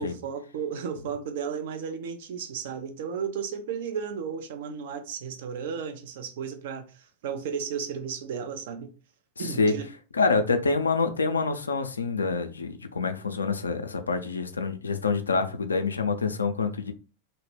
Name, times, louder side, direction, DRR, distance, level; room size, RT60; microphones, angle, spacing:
voice 1, 0.0-8.9 9.4-9.9, right 6 dB, 55° right, 0.4 m, -34 dB
voice 2, 9.4-9.7 10.1-16.9, left 4 dB, 75° left, 0.3 m, -26 dB
2.0 x 2.0 x 3.2 m
figure-of-eight pair, 90°, 0 cm